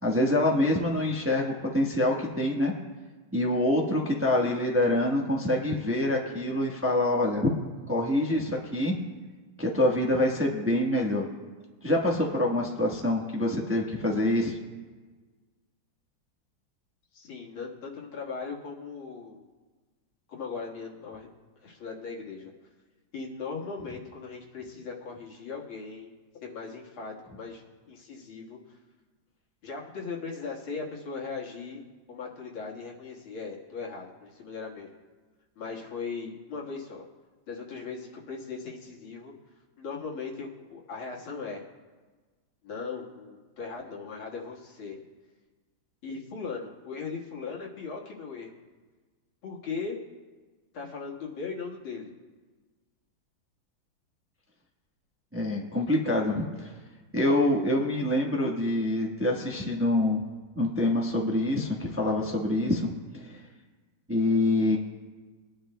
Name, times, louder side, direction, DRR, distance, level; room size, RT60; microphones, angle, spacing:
voice 1, 0.0-2.7 3.3-7.5 7.9-9.0 9.6-11.3 11.8-14.6 55.3-56.7 57.1-60.2 60.6-62.9 63.2-63.4 64.1-64.8, left 1 dB, 10° right, -1 dB, 0.8 m, -26 dB
voice 2, 17.1-19.4 20.3-21.3 21.6-22.5 23.1-26.1 26.4-28.6 29.6-35.0 35.6-37.0 37.5-39.3 39.8-41.6 42.6-45.0 46.0-48.6 49.4-50.0 50.7-52.1, left 4 dB, 90° left, -2 dB, 2.5 m, -38 dB
23.5 x 10.5 x 2.2 m, 1.4 s
omnidirectional pair, 2.2 m